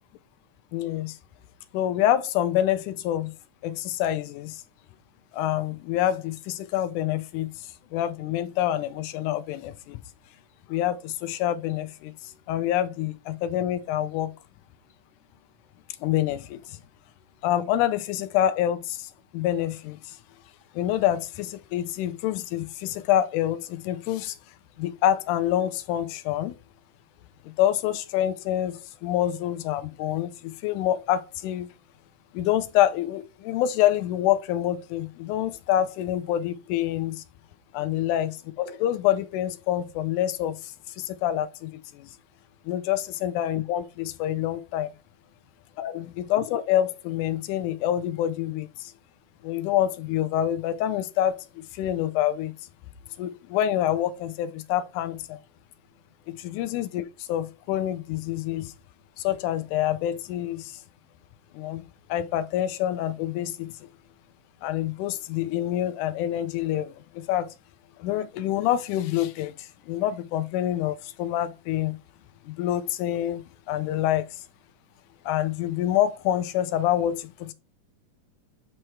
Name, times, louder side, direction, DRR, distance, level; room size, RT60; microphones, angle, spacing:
voice 1, 0.7-1.2 1.7-3.3 3.6-4.6 5.3-10.0 10.7-14.3 16.0-16.8 17.4-20.2 20.7-24.4 24.8-26.6 27.4-31.7 32.3-37.2 37.7-42.1 42.7-44.9 45.8-48.9 49.4-52.5 53.2-55.4 56.3-58.7 59.2-60.8 61.5-61.8 62.1-63.7 64.6-67.5 68.0-72.0 72.5-74.3 75.3-77.5, left 12 dB, 85° left, 2.1 m, -27 dB
8.8 x 3.2 x 4.6 m
omnidirectional pair, 3.7 m